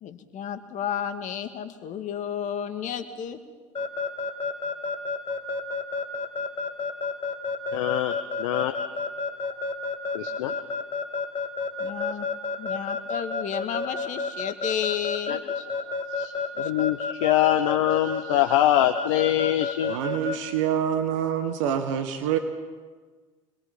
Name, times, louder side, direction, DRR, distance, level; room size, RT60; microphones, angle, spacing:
voice 1, 0.0-3.4 11.8-12.3 12.6-15.4 16.5-16.7, left 9 dB, 50° left, 8 dB, 2.0 m, -32 dB
Keyboard (musical) / Alarm, 3.7-20.4, left 4 dB, 30° left, 2.6 m, -29 dB
voice 2, 7.7-8.8 10.1-10.5 15.3-15.4 16.1-20.0, left 13 dB, 75° left, 8 dB, 0.9 m, -24 dB
voice 3, 19.9-22.4, right 9 dB, 70° right, 8 dB, 1.5 m, -26 dB
26.0 x 21.5 x 5.5 m, 1.4 s
hypercardioid pair, 75°, 17 cm